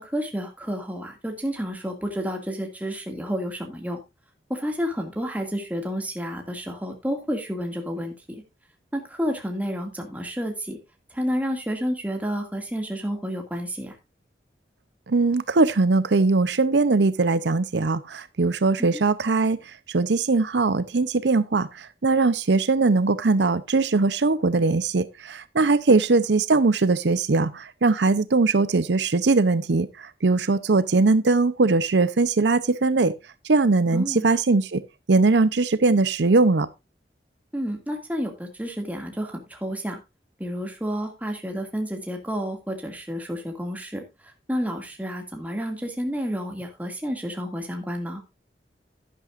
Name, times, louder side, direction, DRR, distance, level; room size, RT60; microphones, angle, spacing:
voice 1, 0.0-4.0 4.5-8.1 8.9-10.8 11.1-14.0 18.8-18.9 33.9-34.2 37.5-40.0 40.4-44.0 44.5-48.2, equal, 10° right, 2.2 m, -30 dB
voice 2, 15.1-19.6 19.9-33.1 33.5-34.8 35.1-36.7, right 3 dB, 85° right, 0.7 m, -21 dB
11.0 x 11.0 x 2.5 m
head